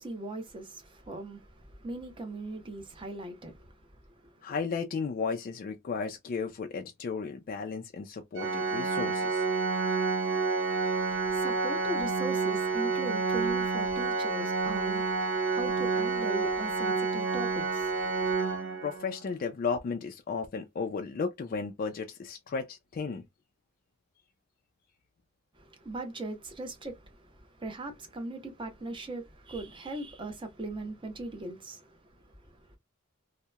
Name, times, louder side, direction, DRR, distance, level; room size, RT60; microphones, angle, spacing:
voice 1, 0.0-3.8 4.2-4.4 10.9-18.6 25.6-32.8, right 2 dB, 25° right, 0.7 m, -40 dB
voice 2, 4.4-9.4 18.8-23.2, left 5 dB, 45° left, 0.3 m, -34 dB
Organ, 8.4-19.2, right 4 dB, 65° right, 0.5 m, -29 dB
2.8 x 2.0 x 2.2 m
head